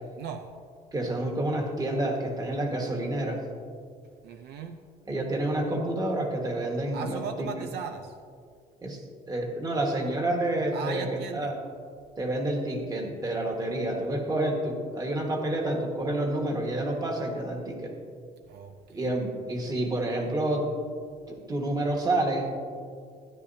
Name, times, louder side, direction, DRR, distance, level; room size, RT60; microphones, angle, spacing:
voice 1, 0.2-0.6 4.2-4.8 6.9-8.2 10.7-11.5 18.5-19.1, right 6 dB, 75° right, 7 dB, 0.6 m, -38 dB
voice 2, 0.9-3.4 5.1-7.5 8.8-9.0 9.3-11.1 11.3-11.5 12.2-17.9 18.9-20.6 21.3-22.5, right 1 dB, 20° right, 1 dB, 1.6 m, -29 dB
13.0 x 10.0 x 2.8 m, 2.2 s
cardioid pair, 110°, 17 cm